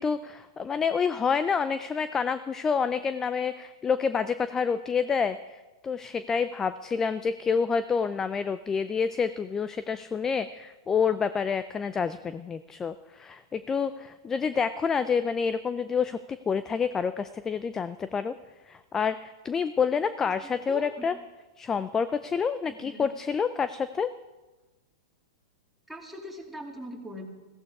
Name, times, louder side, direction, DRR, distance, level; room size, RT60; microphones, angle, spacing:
voice 1, 0.0-16.2 16.5-18.3 18.7-21.2 21.6-24.1, left 6 dB, 15° left, 13 dB, 0.4 m, -28 dB
voice 2, 20.7-21.1 22.8-23.1 25.9-27.3, equal, ahead, -1 dB, 2.6 m, -40 dB
15.5 x 15.0 x 4.8 m, 1.1 s
hypercardioid pair, 125°, 3 cm